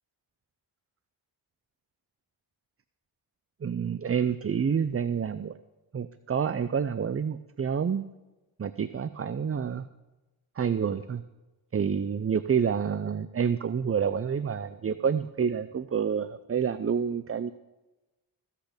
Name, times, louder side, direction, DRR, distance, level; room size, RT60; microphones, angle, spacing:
voice 1, 3.6-5.5 5.9-8.1 8.6-9.9 10.6-11.2 11.7-17.5, right 7 dB, 30° right, 14 dB, 0.4 m, -28 dB
15.0 x 8.3 x 5.1 m, 1.1 s
cardioid pair, 60°, 47 cm